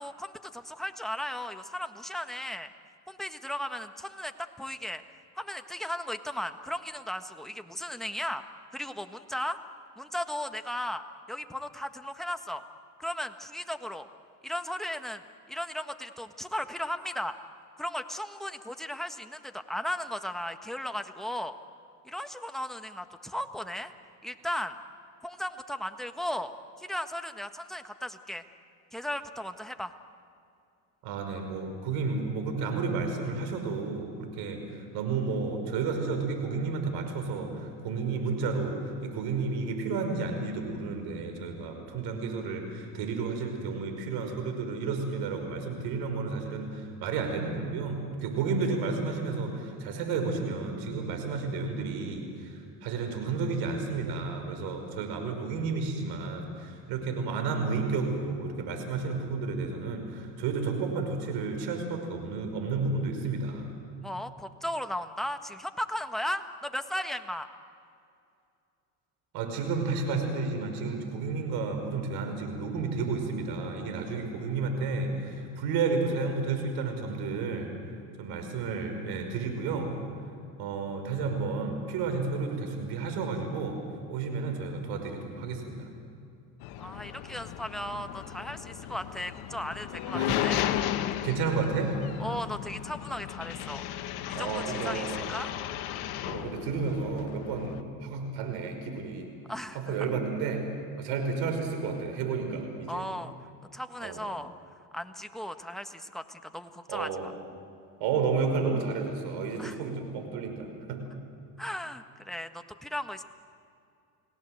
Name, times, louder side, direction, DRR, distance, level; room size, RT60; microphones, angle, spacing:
voice 1, 0.0-2.7 3.1-4.3 4.6-5.0 5.3-8.4 8.7-9.6 10.0-11.0 11.3-12.6 13.0-14.1 14.4-15.2 15.5-17.4 17.8-21.5 22.0-23.9 24.2-24.8 25.2-26.5 26.8-28.4 28.9-29.9 64.0-67.5 86.8-90.6 92.2-93.8 94.3-95.5 99.5-100.0 102.9-103.3 103.7-104.5 104.9-107.3 109.6-109.8 111.6-113.2, left 1 dB, ahead, 7 dB, 1.5 m, -36 dB
voice 2, 31.0-52.5 52.8-63.7 69.3-77.7 78.2-79.9 80.6-83.8 84.1-85.9 90.1-90.4 91.2-91.9 94.3-95.3 96.3-99.3 99.7-100.6 101.0-103.1 104.0-104.2 106.9-107.3 108.0-111.0, right 4 dB, 70° right, 5 dB, 5.6 m, -31 dB
sound 1, 86.6-97.8, left 12 dB, 65° left, 1.4 m, -35 dB
30.0 x 18.0 x 8.0 m, 2.5 s
supercardioid pair, 90°, 41 cm